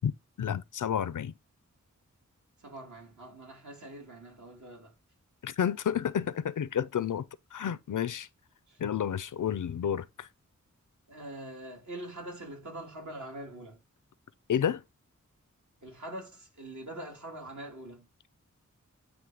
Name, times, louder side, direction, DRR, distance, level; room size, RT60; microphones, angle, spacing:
voice 1, 0.4-1.3 5.4-7.2 7.5-8.3 8.8-10.3 14.5-14.8, left 9 dB, 85° left, 0.5 m, -30 dB
voice 2, 2.6-4.9 8.7-8.8 11.1-13.8 15.8-18.1, right 1 dB, 70° right, 3.0 m, -43 dB
9.3 x 3.1 x 4.9 m
wide cardioid pair, 75°, 30 cm